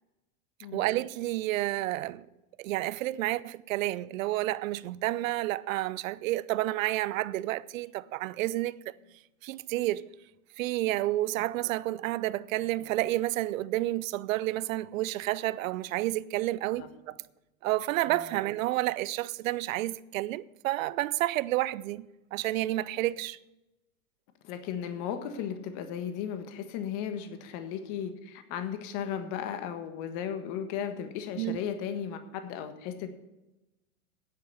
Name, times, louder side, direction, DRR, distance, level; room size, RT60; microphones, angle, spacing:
voice 1, 0.7-2.3 2.6-8.8 9.4-10.1 10.6-17.2 17.6-23.4 31.4-31.6, right 16 dB, 70° right, 0.6 m, -30 dB
voice 2, 24.4-33.1, left 8 dB, 45° left, 1.6 m, -35 dB
10.0 x 7.5 x 7.8 m
hypercardioid pair, 125°, 42 cm